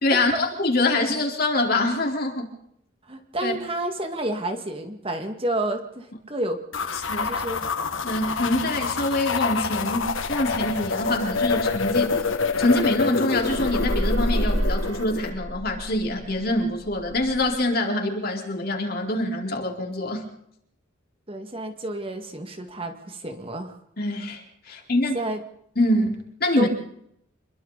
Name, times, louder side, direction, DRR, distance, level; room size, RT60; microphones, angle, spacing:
voice 1, 0.0-2.5 3.4-3.6 7.1-7.3 8.0-12.1 12.6-20.3 24.0-25.2 25.8-26.7, left 1 dB, 50° left, 2 dB, 4.1 m, -25 dB
voice 2, 3.1-7.0 7.2-7.7 21.3-23.8 25.1-25.4 26.6-26.7, right 1 dB, 30° right, 5 dB, 2.1 m, -30 dB
sound 1, 6.7-15.3, left 4 dB, 75° left, 1.7 m, -27 dB
sound 2, 10.0-13.0 13.3-17.6, equal, 85° right, 3.0 m, -30 dB
28.0 x 22.5 x 4.1 m, 0.72 s
head